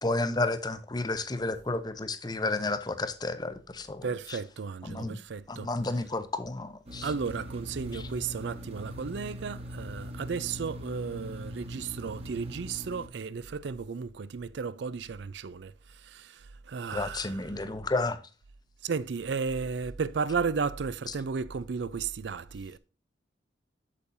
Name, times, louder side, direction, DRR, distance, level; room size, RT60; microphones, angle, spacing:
voice 1, 0.0-4.4 4.8-5.2 5.5-7.1 7.9-8.0 16.9-18.2, left 2 dB, 25° left, 0.7 m, -31 dB
voice 2, 4.0-5.7 7.0-17.4 18.8-22.8, right 5 dB, 75° right, 0.4 m, -34 dB
sound 1, 6.9-13.1, equal, 35° right, 1.4 m, -41 dB
8.3 x 7.1 x 2.6 m
head